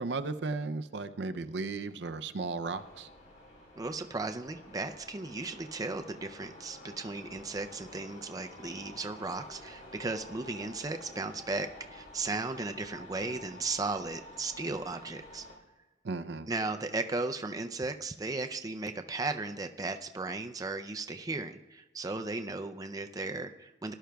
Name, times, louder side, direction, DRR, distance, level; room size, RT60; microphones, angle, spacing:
voice 1, 0.0-3.1 16.0-16.5, right 3 dB, 70° right, 10 dB, 0.5 m, -35 dB
sound 1, 2.6-15.6, left 1 dB, 55° left, 2.9 m, -50 dB
voice 2, 3.8-15.4 16.5-23.9, right 3 dB, 20° right, 6 dB, 0.4 m, -36 dB
19.5 x 11.5 x 2.3 m, 1.2 s
head